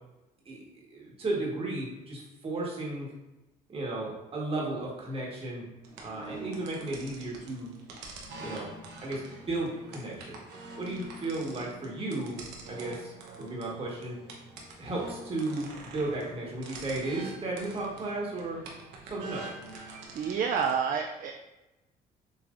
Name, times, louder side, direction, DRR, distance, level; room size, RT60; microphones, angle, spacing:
voice 1, 0.4-3.1 3.7-5.7 6.0-7.7 8.4-8.7 9.0-10.4 10.8-12.4 12.7-13.1 13.4-14.2 14.8-18.6 19.0-19.5, right 2 dB, 35° right, -3 dB, 1.5 m, -34 dB
sound 1, 5.8-20.8, right 2 dB, 85° right, 1.0 m, -45 dB
voice 2, 20.1-21.3, right 6 dB, 50° right, 3 dB, 0.4 m, -28 dB
6.7 x 3.1 x 2.6 m, 1.0 s
cardioid pair, 110°, 17 cm